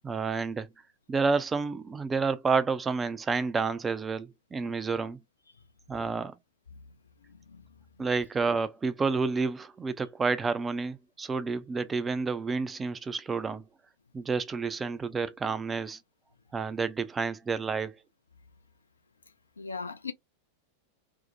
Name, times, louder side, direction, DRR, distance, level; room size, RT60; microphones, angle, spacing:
voice 1, 0.0-0.7 1.1-5.2 5.9-6.4 8.0-13.6 14.1-16.0 16.5-18.0, right 4 dB, 15° right, 0.4 m, -30 dB
voice 2, 7.2-8.1 19.6-20.1, left 4 dB, 75° left, 0.5 m, -41 dB
2.7 x 2.0 x 2.7 m
figure-of-eight pair, 90°, 0 cm